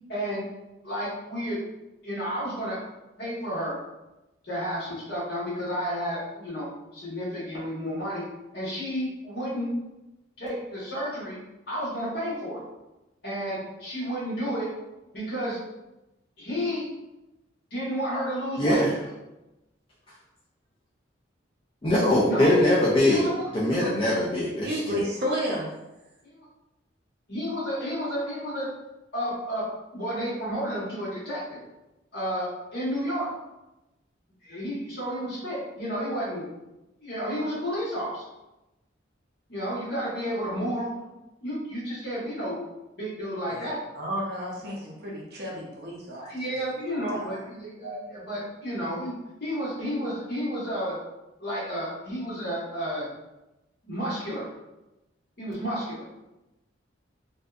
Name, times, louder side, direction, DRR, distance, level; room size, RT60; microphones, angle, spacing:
voice 1, 0.1-0.4 0.8-1.6 2.0-2.8 3.2-3.7 4.4-6.7 6.9-9.7 10.4-11.4 11.7-12.6 13.2-14.7 15.1-15.6 16.4-16.8 17.7-18.8 22.2-22.6 23.0-23.3 23.7-23.9 26.2-26.4 27.3-28.7 29.1-29.6 29.9-31.6 32.1-33.3 34.4-36.5 37.0-38.3 39.5-41.1 41.4-42.6 43.0-43.8 46.1-51.0 51.4-53.1 53.8-54.5 55.4-56.1, equal, 55° left, -8 dB, 1.1 m, -31 dB
voice 2, 18.6-19.0 21.8-23.3 23.5-25.0, left 1 dB, 25° left, -6 dB, 0.3 m, -22 dB
voice 3, 24.6-25.7 43.5-43.6 43.9-46.5 46.9-47.4, equal, 55° right, -3 dB, 0.6 m, -32 dB
2.6 x 2.2 x 2.3 m, 0.98 s
head